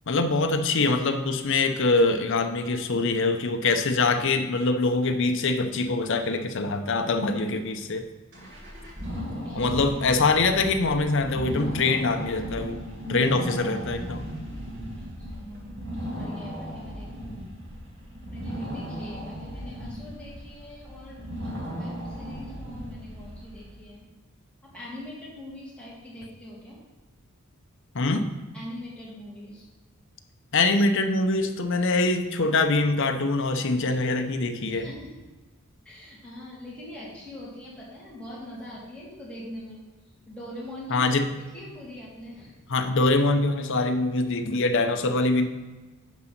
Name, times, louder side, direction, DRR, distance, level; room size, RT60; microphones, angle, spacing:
voice 1, 0.1-8.1 9.5-14.2 27.9-28.3 30.5-34.9 40.9-41.3 42.7-45.5, left 3 dB, 60° left, 7 dB, 0.7 m, -24 dB
Aston Exhaust, 8.3-23.7, equal, 55° right, 2.1 m, -36 dB
voice 2, 9.0-9.8 15.0-15.7 16.1-17.5 18.3-24.1 24.6-26.8 28.5-29.6 34.7-35.1 35.8-39.8 40.3-41.0 41.4-42.5, left 1 dB, 5° left, -7 dB, 2.6 m, -42 dB
10.0 x 3.9 x 5.9 m, 1.2 s
head